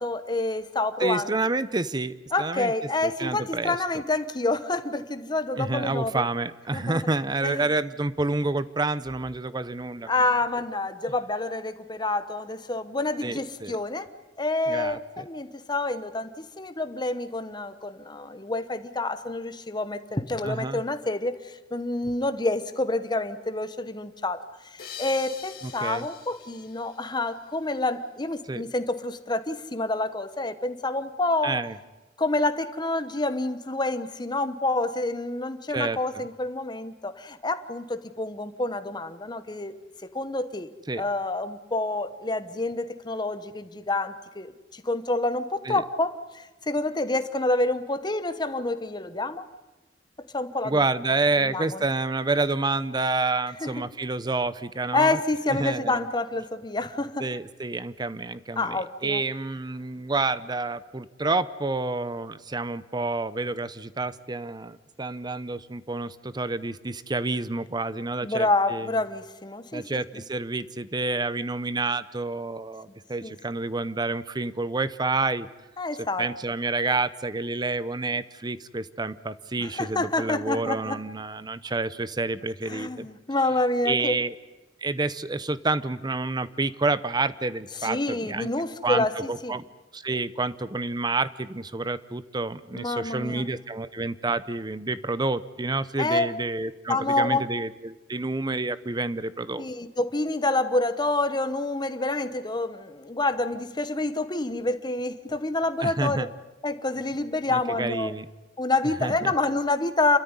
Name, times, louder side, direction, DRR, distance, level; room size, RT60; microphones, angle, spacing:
voice 1, 0.0-1.3 2.3-6.2 6.7-7.0 7.4-7.7 10.1-14.1 14.4-16.3 16.6-31.6 32.2-39.7 40.0-40.7 41.0-49.4 50.3-50.8 51.5-51.8 53.6-53.8 54.9-57.3 58.6-59.2 68.2-69.8 73.2-73.4 75.8-76.3 79.6-81.0 82.7-84.2 87.8-89.6 92.7-93.5 96.0-96.3 96.9-97.4 99.6-106.3 106.6-108.1 108.6-110.2, left 2 dB, 25° left, 11 dB, 1.1 m, -28 dB
voice 2, 1.0-2.7 3.0-3.8 5.6-10.1 13.2-13.8 14.7-15.2 20.4-20.8 25.8-26.1 28.5-28.6 31.4-31.8 35.7-36.2 40.9-41.0 45.6-45.8 50.6-55.2 55.5-56.1 57.2-69.0 69.7-75.5 76.0-83.1 83.8-84.3 84.8-88.5 88.8-89.6 89.9-99.7 105.8-106.3 107.5-108.3 109.0-109.3, right 3 dB, 25° right, 15 dB, 0.7 m, -29 dB
sound 1, 24.8-27.9, left 8 dB, 55° left, 2.2 m, -44 dB
28.0 x 13.5 x 9.8 m, 1.1 s
head